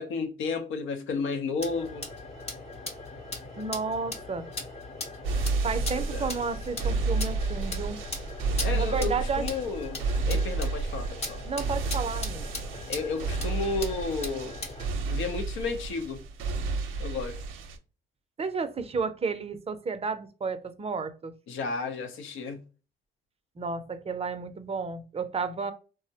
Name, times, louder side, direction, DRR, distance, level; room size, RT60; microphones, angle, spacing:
voice 1, 0.0-2.1 5.9-6.3 8.6-11.4 12.9-14.6 15.1-16.2 17.0-17.4 21.5-22.6, left 4 dB, 80° left, 0.7 m, -32 dB
sound 1, 1.6-14.9, left 2 dB, 30° left, 0.8 m, -39 dB
voice 2, 3.6-4.5 5.6-8.0 8.7-9.4 11.4-12.6 18.4-21.3 23.6-25.7, right 4 dB, 30° right, 0.5 m, -32 dB
sound 2, 5.2-17.8, right 3 dB, 85° right, 0.5 m, -31 dB
3.5 x 2.0 x 2.7 m
cardioid pair, 90°, 20 cm